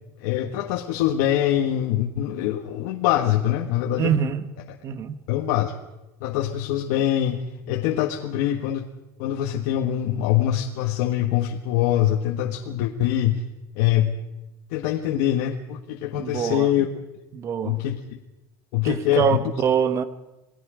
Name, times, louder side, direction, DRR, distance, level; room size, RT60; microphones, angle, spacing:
voice 1, 0.2-4.1 4.7-4.8 5.3-5.7 6.2-8.8 9.2-13.4 13.8-14.1 14.7-16.9 17.6-18.0 18.7-19.4, left 12 dB, 75° left, 1.6 m, -24 dB
voice 2, 4.0-4.4 4.8-5.2 16.2-16.7 17.3-17.8 18.8-20.0, right 7 dB, 30° right, 1.4 m, -24 dB
28.0 x 18.5 x 5.1 m
cardioid pair, 165°, 9 cm